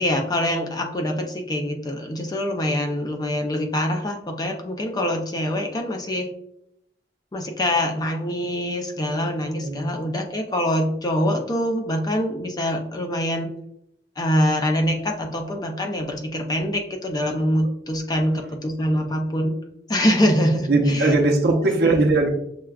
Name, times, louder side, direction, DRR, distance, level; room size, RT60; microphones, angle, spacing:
voice 1, 0.0-6.3 7.3-13.5 14.2-19.5 19.9-21.1 21.4-22.0, equal, 25° left, 3 dB, 0.4 m, -24 dB
voice 2, 20.7-22.3, right 2 dB, 65° right, 0 dB, 0.7 m, -19 dB
5.9 x 2.2 x 2.3 m, 0.76 s
head